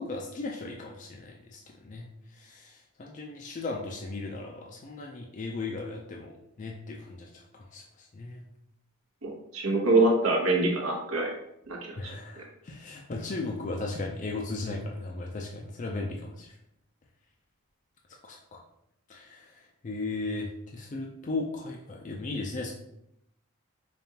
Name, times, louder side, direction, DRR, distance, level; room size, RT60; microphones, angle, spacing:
voice 1, 0.0-8.4 12.0-16.6 18.2-18.6 19.1-22.7, left 3 dB, 35° left, 0 dB, 0.4 m, -37 dB
voice 2, 9.2-11.3 11.7-12.0, right 2 dB, 75° right, 0 dB, 0.9 m, -25 dB
5.1 x 2.3 x 2.8 m, 0.77 s
head